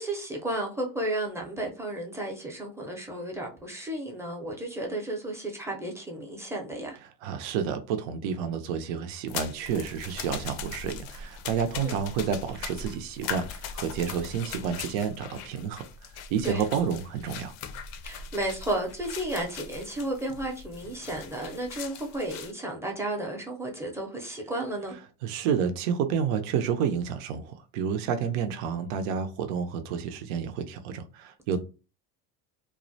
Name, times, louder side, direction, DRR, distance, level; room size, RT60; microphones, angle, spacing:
voice 1, 0.0-7.0 11.8-12.0 16.4-16.6 18.0-24.9, right 1 dB, 5° right, 0.5 m, -33 dB
voice 2, 7.2-15.8 16.3-17.5 25.2-31.6, right 7 dB, 85° right, 0.5 m, -30 dB
sound 1, 9.3-22.5, left 6 dB, 60° left, 0.5 m, -40 dB
2.3 x 2.0 x 2.6 m
supercardioid pair, 105°, 39 cm